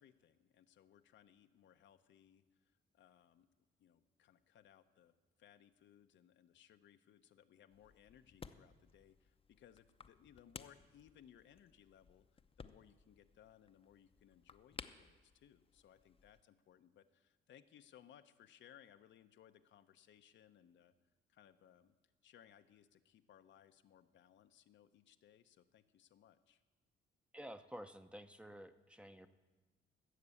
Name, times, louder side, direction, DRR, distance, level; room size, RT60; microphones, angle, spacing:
voice 1, 0.0-3.5 3.8-5.1 5.4-20.9 21.3-21.9 22.2-26.6, left 10 dB, 70° left, 9 dB, 0.8 m, -65 dB
sound 1, 7.7-16.4, left 5 dB, 30° left, 0.7 m, -58 dB
voice 2, 27.3-29.3, equal, 5° right, 9 dB, 0.8 m, -51 dB
16.0 x 6.8 x 8.4 m, 1.2 s
cardioid pair, 90°, 20 cm